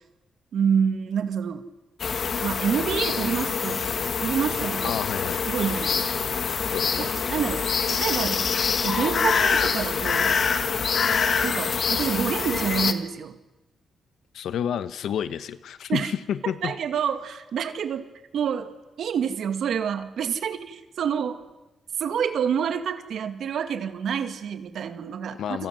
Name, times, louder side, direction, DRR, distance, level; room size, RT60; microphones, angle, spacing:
voice 1, 0.5-1.6 2.4-3.8 4.2-4.9 5.4-6.3 7.0-8.5 8.8-10.4 11.4-13.4 15.9-16.1 16.4-18.1 18.3-18.7 19.0-21.4 22.0-25.7, right 7 dB, 70° right, 9 dB, 2.3 m, -28 dB
sound 1, 2.0-12.9, left 6 dB, 45° left, 1.5 m, -25 dB
voice 2, 4.8-5.5 6.6-7.1 14.3-16.7 25.4-25.7, left 9 dB, 85° left, 13 dB, 1.2 m, -30 dB
29.0 x 26.0 x 7.8 m, 1.0 s
wide cardioid pair, 150°, 0 cm